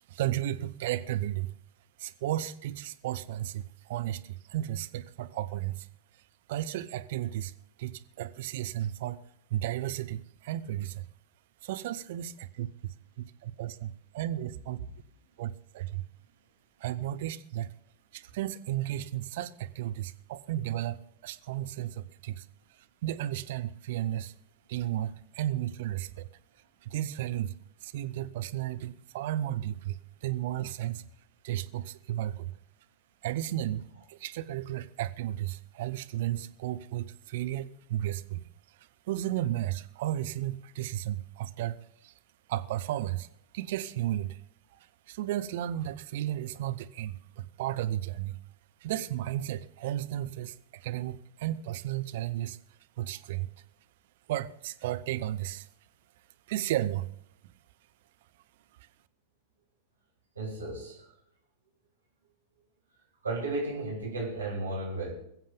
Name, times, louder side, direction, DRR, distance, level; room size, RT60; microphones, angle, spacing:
voice 1, 0.1-1.5 2.0-5.9 6.5-7.5 7.8-9.2 9.5-11.1 11.6-14.8 15.4-16.0 16.8-17.7 18.1-22.4 22.7-24.3 24.7-26.3 26.8-27.5 27.8-31.0 31.4-32.5 33.2-33.8 34.1-38.4 39.1-42.1 42.5-43.3 43.5-44.4 45.1-48.4 48.8-52.6 53.0-53.5 54.3-55.7 56.5-57.1, right 13 dB, 55° right, 0.8 m, -34 dB
voice 2, 60.4-61.0 63.2-65.1, right 2 dB, 75° right, 4.0 m, -33 dB
22.0 x 7.6 x 5.2 m
figure-of-eight pair, 90°, 0 cm